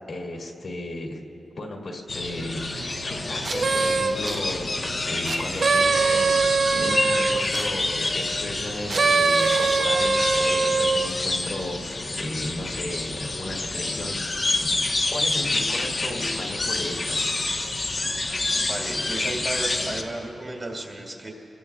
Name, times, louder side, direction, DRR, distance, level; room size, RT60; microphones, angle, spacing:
voice 1, 0.1-1.2 1.6-14.7 15.1-17.3, left 1 dB, 55° left, -1 dB, 2.1 m, -34 dB
sound 1, 2.1-20.0, left 2 dB, 35° left, 1.2 m, -28 dB
sound 2, 3.4-4.4 5.2-7.7 8.9-11.1, right 4 dB, 45° right, 0.6 m, -22 dB
voice 2, 18.5-21.3, right 2 dB, 25° right, -1 dB, 2.6 m, -33 dB
26.0 x 21.0 x 2.4 m, 2.6 s
wide cardioid pair, 155°, 0 cm